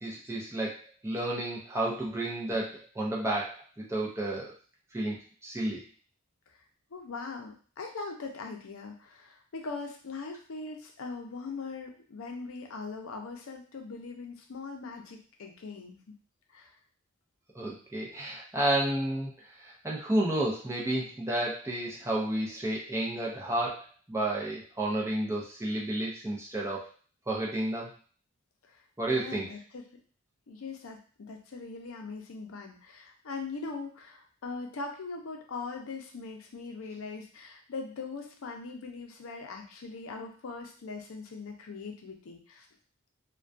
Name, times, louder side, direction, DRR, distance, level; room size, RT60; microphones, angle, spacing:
voice 1, 0.0-4.5 4.9-5.8 17.5-26.9 27.3-27.9 29.0-29.5, right 1 dB, 15° right, -3 dB, 0.5 m, -31 dB
voice 2, 6.9-16.1 16.5-16.7 28.7-28.8 29.1-29.8 30.5-42.7, left 4 dB, 75° left, 2 dB, 0.5 m, -41 dB
2.2 x 2.2 x 2.5 m, 0.41 s
head